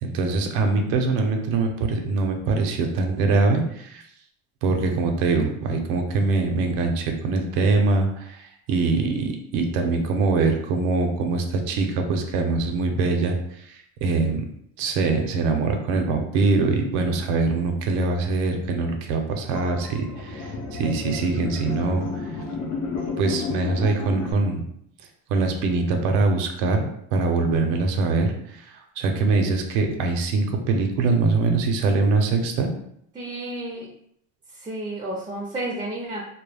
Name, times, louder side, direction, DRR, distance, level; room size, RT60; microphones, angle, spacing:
voice 1, 0.0-4.0 4.6-14.5 14.8-22.1 23.2-24.6 25.3-26.8 27.1-32.7, right 3 dB, 85° right, 4 dB, 0.6 m, -23 dB
sound 1, 19.5-24.3, left 4 dB, 50° left, 0.7 m, -32 dB
voice 2, 33.1-33.9 34.5-36.2, right 1 dB, 15° right, -3 dB, 0.4 m, -31 dB
2.2 x 2.0 x 3.2 m, 0.70 s
cardioid pair, 125°, 32 cm